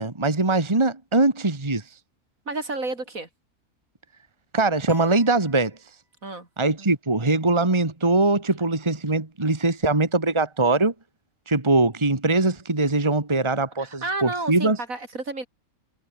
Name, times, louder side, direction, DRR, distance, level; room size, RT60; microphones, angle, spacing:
voice 1, 0.0-1.8 4.5-5.8 6.6-10.9 11.5-14.8, right 2 dB, 20° right, 2.0 m, -22 dB
voice 2, 2.5-3.3 6.2-6.5 13.8-15.5, right 2 dB, 70° right, 4.8 m, -31 dB
sound 1, 4.9-6.3, right 1 dB, 45° right, 7.9 m, -46 dB
omnidirectional pair, 1.5 m